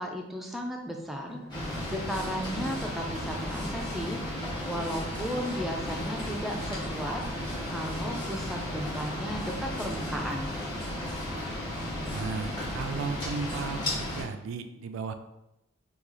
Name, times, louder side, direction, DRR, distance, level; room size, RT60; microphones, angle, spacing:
voice 1, 0.0-1.4 1.9-7.2 7.7-10.6, equal, ahead, 1 dB, 0.3 m, -35 dB
sound 1, 1.3-14.2, left 3 dB, 75° left, 1.1 m, -47 dB
sound 2, 1.5-14.2, left 1 dB, 25° left, 1.1 m, -34 dB
voice 2, 12.0-15.1, right 5 dB, 80° right, 8 dB, 0.3 m, -35 dB
3.0 x 2.3 x 3.7 m, 0.88 s
head